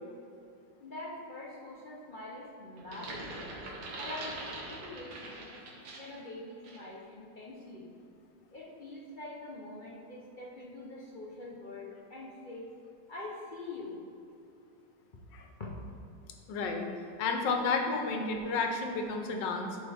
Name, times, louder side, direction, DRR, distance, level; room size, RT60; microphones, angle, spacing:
voice 1, 0.8-3.5 4.0-5.5 6.0-7.9 8.5-12.7 13.1-14.0 15.6-15.7 16.5-16.6, left 2 dB, 55° left, -4 dB, 0.5 m, -44 dB
sound 1, 2.8-6.2 6.6-6.9, right 2 dB, 65° right, 1.6 m, -43 dB
voice 2, 16.5-16.9 17.2-19.8, left 4 dB, 80° left, 3 dB, 1.4 m, -31 dB
10.5 x 4.3 x 3.4 m, 2.6 s
omnidirectional pair, 1.9 m